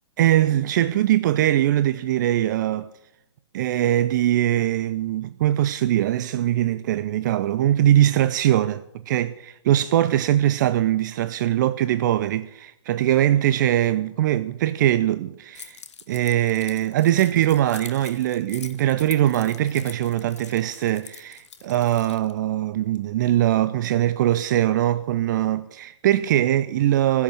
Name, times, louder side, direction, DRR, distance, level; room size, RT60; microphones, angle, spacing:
voice 1, 0.2-2.9 3.5-15.8 16.1-27.2, right 12 dB, 40° right, 0.5 m, -21 dB
Keys jangling, 15.6-22.3, left 7 dB, 70° left, 1.3 m, -44 dB
15.5 x 8.0 x 9.2 m
hypercardioid pair, 135°, 15 cm